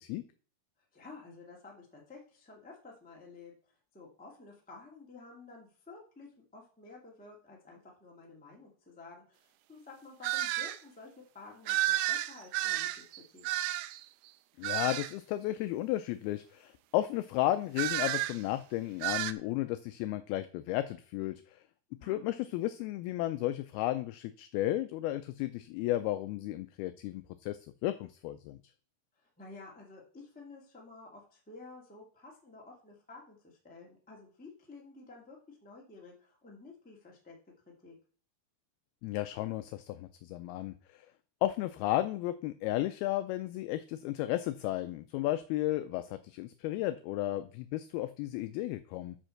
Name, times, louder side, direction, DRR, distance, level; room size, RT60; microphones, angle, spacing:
voice 1, 0.9-3.5 3.9-13.4 22.0-22.4 29.1-37.3 37.8-37.9, left 3 dB, 5° left, -2 dB, 1.1 m, -52 dB
sound 1, 10.2-10.8 11.7-14.0 14.6-15.1 17.8-18.4 19.0-19.3, right 15 dB, 80° right, 2.5 m, -31 dB
voice 2, 14.6-21.6 22.0-28.6 39.0-41.1 41.4-49.2, left 15 dB, 80° left, 10 dB, 2.3 m, -34 dB
9.0 x 5.4 x 6.4 m, 0.43 s
omnidirectional pair, 4.7 m